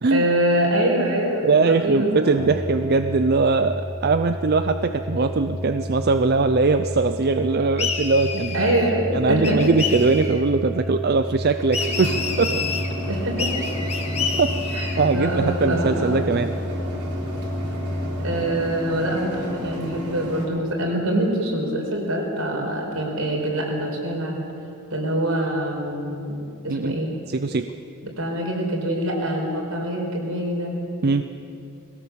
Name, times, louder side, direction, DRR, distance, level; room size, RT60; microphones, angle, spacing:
voice 1, 0.1-2.4 8.5-9.7 13.1-13.6 14.7-16.3 18.2-24.4 24.9-26.4 26.6-27.1 28.0-30.7, right 1 dB, 75° right, 0 dB, 4.9 m, -24 dB
voice 2, 1.4-8.6 9.1-12.6 14.4-16.5 22.5-22.7 26.7-27.0 27.3-27.7 31.0-31.2, right 4 dB, 45° right, 9 dB, 0.5 m, -21 dB
sound 1, 2.4-18.4, left 1 dB, ahead, 0.6 m, -31 dB
sound 2, 7.8-8.9 9.4-10.4 11.7-12.9 13.4-15.1, left 5 dB, 30° left, 1.8 m, -29 dB
sound 3, 11.5-20.5, equal, 90° right, 3.9 m, -33 dB
21.5 x 17.5 x 7.4 m, 2.6 s
head